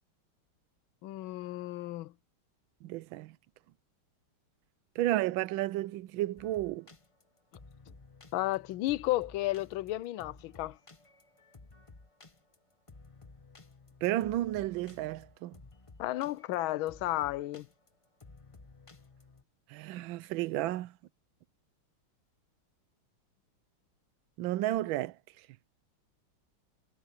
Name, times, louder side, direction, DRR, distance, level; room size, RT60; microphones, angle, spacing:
voice 1, 1.0-2.1 8.3-10.8 16.0-17.7, left 16 dB, 75° left, 1.4 m, -33 dB
voice 2, 2.8-3.4 5.0-6.9 14.0-15.6 19.7-20.9 24.4-25.2, right 15 dB, 75° right, 1.3 m, -32 dB
sound 1, 6.4-19.4, left 3 dB, 20° left, 0.8 m, -55 dB
omnidirectional pair, 2.3 m